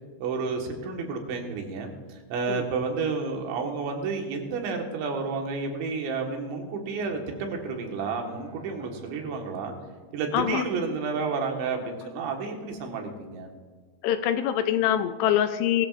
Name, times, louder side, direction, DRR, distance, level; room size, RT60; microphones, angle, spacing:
voice 1, 0.2-9.8 10.1-13.5, right 4 dB, 80° right, 2 dB, 3.9 m, -31 dB
Bowed string instrument, 6.8-11.2, right 3 dB, 65° right, 3.9 m, -53 dB
voice 2, 10.3-10.6 14.0-15.9, left 10 dB, 80° left, 9 dB, 2.6 m, -24 dB
21.0 x 13.0 x 2.5 m, 1.5 s
omnidirectional pair, 5.1 m